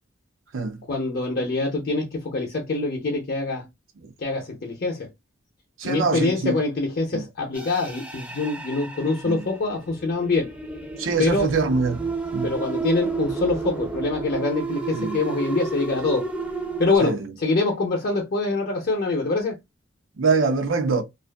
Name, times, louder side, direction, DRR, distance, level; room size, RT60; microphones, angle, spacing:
voice 1, 0.9-3.6 4.2-5.1 5.8-10.5 11.2-11.5 12.4-16.3 16.8-19.6, left 3 dB, 55° left, 0.6 m, -25 dB
voice 2, 5.8-6.6 7.1-7.2 9.3-9.4 11.0-12.5 14.9-15.2 17.0-17.3 20.2-21.0, right 4 dB, 85° right, 0.6 m, -24 dB
sound 1, 7.5-17.0, right 4 dB, 5° right, 0.4 m, -31 dB
2.4 x 2.4 x 2.2 m
head